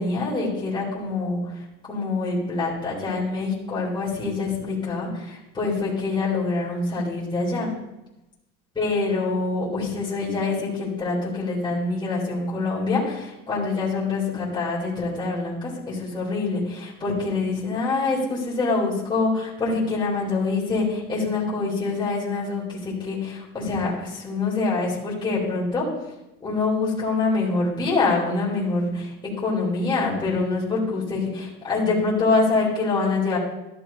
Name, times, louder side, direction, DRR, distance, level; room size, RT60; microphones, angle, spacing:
voice 1, 0.0-1.6 1.9-7.7 8.7-25.9 26.4-33.4, left 3 dB, 15° left, -8 dB, 3.9 m, -25 dB
13.0 x 12.0 x 2.9 m, 0.95 s
cardioid pair, 145°, 30 cm